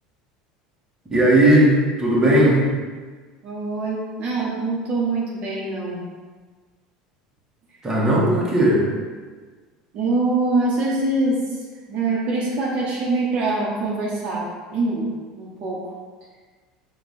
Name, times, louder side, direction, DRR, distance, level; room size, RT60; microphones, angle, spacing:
voice 1, 1.1-2.7 7.8-8.9, right 1 dB, 20° right, -4 dB, 1.2 m, -16 dB
voice 2, 3.4-6.0 9.9-15.8, right 2 dB, 50° right, -4 dB, 0.9 m, -24 dB
4.4 x 2.4 x 4.1 m, 1.4 s
hypercardioid pair, 85°, 3 cm